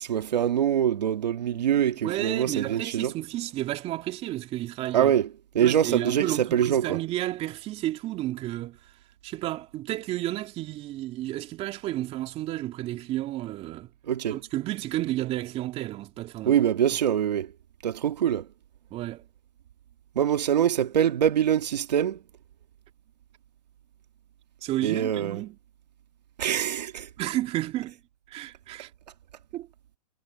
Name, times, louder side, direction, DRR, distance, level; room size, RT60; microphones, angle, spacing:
voice 1, 0.0-3.1 4.9-5.3 5.5-7.0 14.1-14.4 16.5-17.5 17.8-18.5 20.2-22.2 24.8-25.4 26.4-27.1, right 9 dB, 80° right, 2.1 m, -24 dB
voice 2, 1.5-5.1 5.6-8.9 9.2-13.9 14.3-16.6 18.9-19.2 24.6-25.6 27.2-28.0 28.3-28.9 29.5-29.7, right 15 dB, 30° right, 2.8 m, -32 dB
hypercardioid pair, 140°, 21 cm